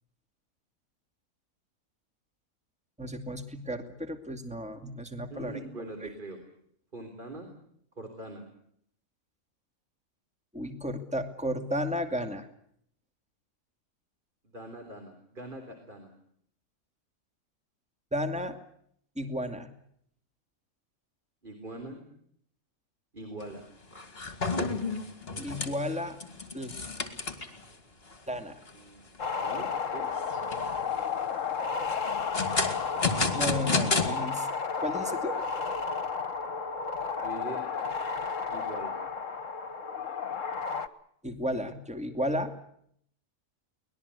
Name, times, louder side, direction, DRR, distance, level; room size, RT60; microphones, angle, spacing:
voice 1, 3.0-5.6 6.0-6.1 10.5-12.5 18.1-18.6 19.2-19.7 25.4-26.2 26.5-26.7 28.3-28.6 33.4-34.5 34.8-35.4 41.2-42.6, equal, 5° right, 7 dB, 2.4 m, -33 dB
voice 2, 5.3-6.4 6.9-7.5 8.0-8.5 14.4-16.1 21.4-22.0 23.1-23.6 28.7-29.1 29.4-30.1 37.2-37.6 38.5-38.9, right 2 dB, 35° right, 5 dB, 3.8 m, -42 dB
sound 1, 23.4-23.6 23.9-27.6 28.1-28.2 28.7-28.8 29.2-29.7 30.2-30.8 31.9-34.1, left 3 dB, 40° left, 2.8 m, -31 dB
sound 2, 29.2-40.9, left 5 dB, 60° left, 1.6 m, -32 dB
24.0 x 20.0 x 8.4 m, 0.67 s
omnidirectional pair, 1.5 m